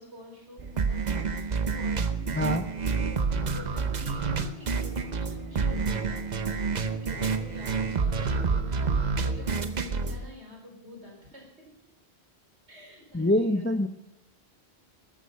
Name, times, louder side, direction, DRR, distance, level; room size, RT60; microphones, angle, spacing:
voice 1, 0.0-2.5 2.8-3.2 3.5-11.7 12.7-13.8, left 1 dB, 85° right, 1 dB, 4.6 m, -47 dB
sound 1, 0.6-10.3, right 5 dB, 45° right, 0.9 m, -28 dB
Bowed string instrument, 1.1-9.6, right 7 dB, 20° right, 3.3 m, -49 dB
voice 2, 2.3-2.6 13.1-13.9, left 1 dB, 15° left, 9 dB, 0.5 m, -24 dB
13.5 x 13.0 x 5.7 m, 0.93 s
omnidirectional pair, 1.1 m